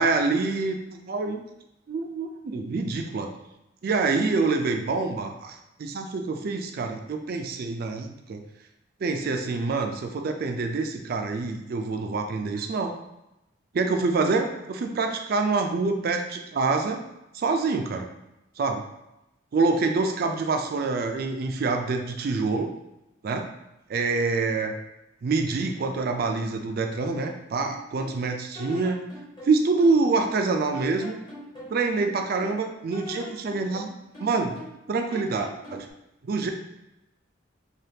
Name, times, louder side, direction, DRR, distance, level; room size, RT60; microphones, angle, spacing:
voice 1, 0.0-1.4 1.9-3.3 3.8-8.4 9.0-13.0 13.7-17.0 17.3-18.1 18.6-18.8 19.5-22.7 23.2-23.5 23.9-24.7 25.2-29.1 29.4-31.2 31.7-33.9 34.2-34.6 34.9-35.9 36.2-36.5, right 3 dB, 50° right, 5 dB, 0.3 m, -26 dB
sound 1, 27.2-28.2 28.5-30.5 30.7-32.6 32.9-34.8 35.1-35.9, left 1 dB, 25° left, 0.8 m, -42 dB
3.3 x 2.3 x 2.7 m, 0.90 s
head